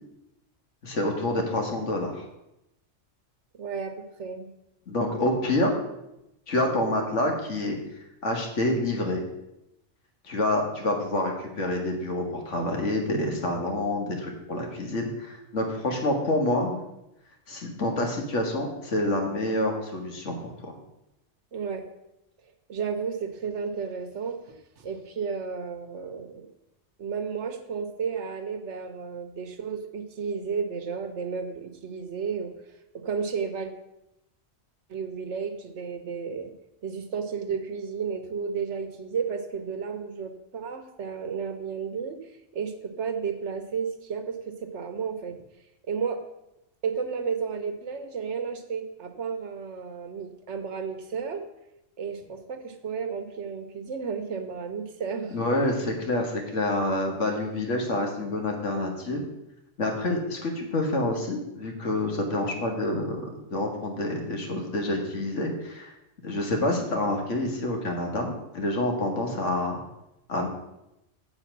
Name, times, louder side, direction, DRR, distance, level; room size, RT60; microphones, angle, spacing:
voice 1, 0.8-2.2 4.9-5.8 6.5-7.8 8.2-9.2 10.3-16.8 17.5-20.7 55.3-59.2 59.8-65.9 66.2-69.8 70.3-70.5, left 1 dB, 70° left, 2 dB, 2.0 m, -27 dB
voice 2, 3.5-4.5 21.5-21.8 22.7-26.5 27.0-32.5 32.9-33.7 34.9-36.5 36.8-42.2 42.5-45.4 45.9-46.2 46.8-51.4 52.0-55.4, right 6 dB, 70° right, 7 dB, 1.3 m, -32 dB
7.6 x 7.2 x 5.9 m, 0.87 s
omnidirectional pair, 1.3 m